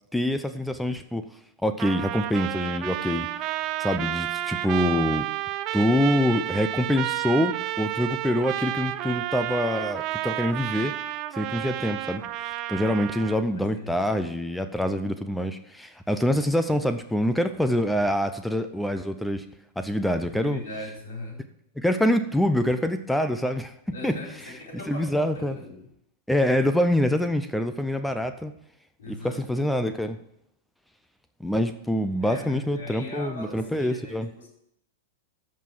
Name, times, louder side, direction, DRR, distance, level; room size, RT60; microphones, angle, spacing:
voice 1, 0.1-1.2 1.6-3.3 3.8-5.3 5.7-11.0 11.4-12.2 12.7-19.4 19.8-20.6 21.8-23.7 24.0-24.1 24.9-25.6 26.3-28.5 29.1-30.2 31.4-34.3, left 1 dB, 5° left, 10 dB, 0.7 m, -25 dB
Trumpet, 1.8-13.4, right 14 dB, 40° right, 0.6 m, -31 dB
voice 2, 13.5-14.0 20.3-21.4 23.9-25.0 25.3-25.9 29.0-29.6 32.2-34.5, left 1 dB, 65° left, -1 dB, 4.4 m, -39 dB
13.5 x 5.5 x 6.2 m, 0.77 s
figure-of-eight pair, 95°, 0 cm